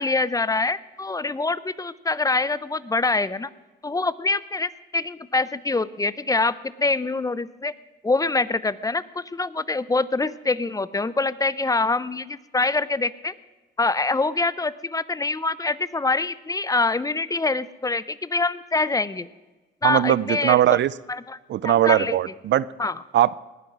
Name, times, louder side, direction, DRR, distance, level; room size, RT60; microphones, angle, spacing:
voice 1, 0.0-3.5 3.8-7.7 8.0-13.3 13.8-19.3 19.8-20.8 21.1-21.4 21.6-22.2 22.8-23.0, left 3 dB, 15° left, 17 dB, 0.6 m, -25 dB
voice 2, 19.8-20.9 21.5-22.7 23.1-23.3, right 12 dB, 65° right, 20 dB, 0.6 m, -19 dB
19.5 x 9.3 x 6.2 m, 1.2 s
cardioid pair, 90°, 20 cm